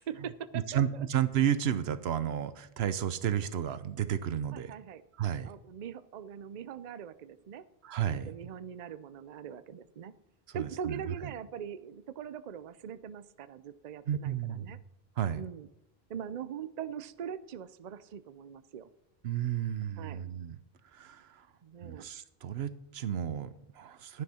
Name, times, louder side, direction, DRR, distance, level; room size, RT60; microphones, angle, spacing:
voice 1, 0.0-0.8 4.5-5.0 5.4-7.6 8.1-10.1 10.5-14.8 15.3-15.7 16.1-18.9 20.0-20.3 21.6-22.1, right 8 dB, 50° right, 14 dB, 0.6 m, -42 dB
voice 2, 0.5-4.7 5.2-5.5 7.8-8.3 10.5-11.1 14.1-14.8 15.2-15.4 19.2-20.6 20.9-21.5 21.8-24.2, right 9 dB, 85° right, 14 dB, 1.0 m, -32 dB
11.0 x 9.8 x 4.2 m, 0.86 s
omnidirectional pair, 1.0 m